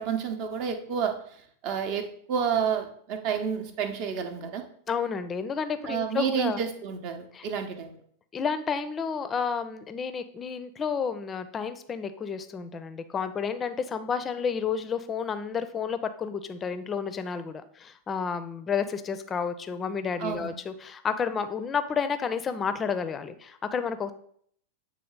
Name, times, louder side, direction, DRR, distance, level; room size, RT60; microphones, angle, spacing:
voice 1, 0.0-4.6 5.8-8.0 20.2-20.5, right 7 dB, 45° right, 7 dB, 0.7 m, -30 dB
voice 2, 4.9-6.6 7.3-7.4 8.3-24.1, left 6 dB, 20° left, 11 dB, 0.5 m, -31 dB
7.7 x 3.2 x 3.8 m, 0.63 s
figure-of-eight pair, 90°, 0 cm